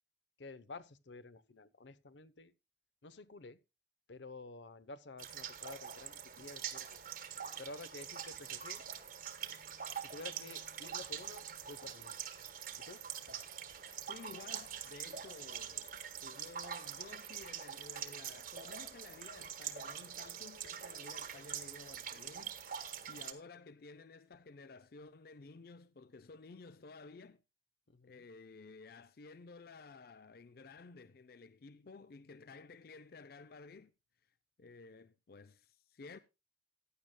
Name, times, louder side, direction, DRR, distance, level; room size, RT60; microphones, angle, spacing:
voice 1, 0.4-2.5 3.0-3.6 4.1-7.0 7.6-8.8 10.0-12.4 12.8-13.0 27.9-28.3, left 3 dB, 85° left, 0.8 m, -51 dB
sound 1, 5.2-23.3, right 8 dB, 50° right, 1.3 m, -44 dB
voice 2, 14.1-27.4 28.0-33.9 34.6-36.2, left 4 dB, 60° left, 0.5 m, -54 dB
15.5 x 10.5 x 2.2 m
head